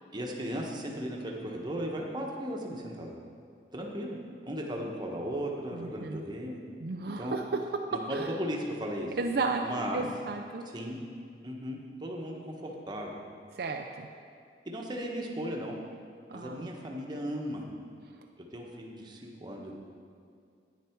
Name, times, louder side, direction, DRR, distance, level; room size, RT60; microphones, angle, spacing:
voice 1, 0.1-3.1 3.7-4.2 4.4-6.6 7.0-7.3 7.9-9.1 9.6-10.0 10.6-11.0 11.4-13.1 14.7-15.8 16.3-17.6 18.5-19.7, equal, 25° right, -1 dB, 1.1 m, -36 dB
voice 2, 5.7-6.2 6.8-7.4 8.1-8.3 9.2-10.6 13.6-14.1 16.3-16.7, right 3 dB, 60° right, 3 dB, 0.5 m, -33 dB
10.0 x 9.2 x 4.5 m, 2.3 s
head